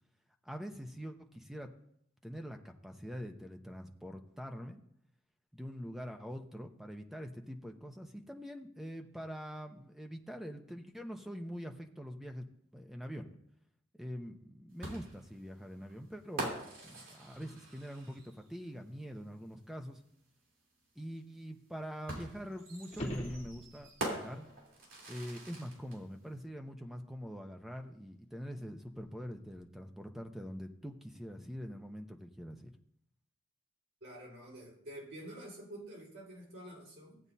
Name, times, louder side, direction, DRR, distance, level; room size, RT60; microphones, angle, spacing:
voice 1, 0.4-1.7 2.2-4.8 5.5-12.5 12.7-13.3 14.0-16.6 16.8-20.0 21.0-24.4 25.1-32.7, equal, ahead, 4 dB, 0.7 m, -44 dB
sound 1, 14.8-18.5 19.9-20.0 22.1-26.0, right 2 dB, 85° right, 3.5 m, -43 dB
sound 2, 22.9-24.1 29.0-29.1, equal, 30° left, 1.6 m, -40 dB
voice 2, 34.0-37.2, right 1 dB, 65° right, -2 dB, 4.7 m, -48 dB
16.5 x 8.7 x 2.8 m, 0.73 s
head